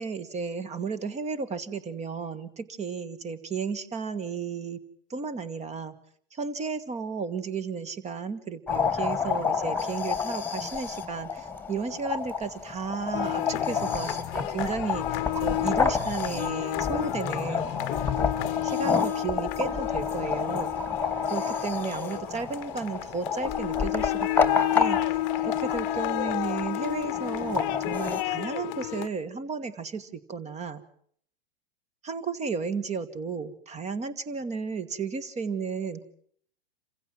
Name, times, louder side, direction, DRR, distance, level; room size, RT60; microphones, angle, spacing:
voice 1, 0.0-4.8 5.1-5.9 6.3-17.7 18.6-20.7 21.3-25.0 25.4-30.8 32.0-36.0, right 5 dB, 20° right, 15 dB, 1.7 m, -33 dB
sound 1, 8.7-28.2, left 5 dB, 5° left, 2.2 m, -30 dB
sound 2, 13.1-29.1, left 17 dB, 45° left, 1.0 m, -31 dB
28.0 x 15.5 x 7.6 m, 0.63 s
hypercardioid pair, 110°, 31 cm